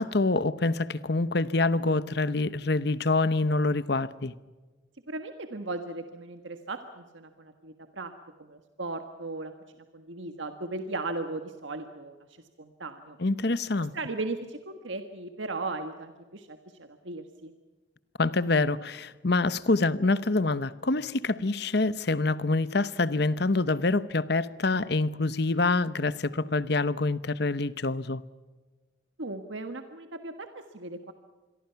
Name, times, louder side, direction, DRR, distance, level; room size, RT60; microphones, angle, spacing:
voice 1, 0.0-4.3 13.2-13.9 18.2-28.2, left 3 dB, 55° left, 0.9 m, -26 dB
voice 2, 5.1-8.1 8.4-9.5 9.9-12.2 12.6-13.2 13.9-17.5 29.2-31.1, right 2 dB, 70° right, 1.6 m, -37 dB
27.5 x 22.5 x 5.8 m
head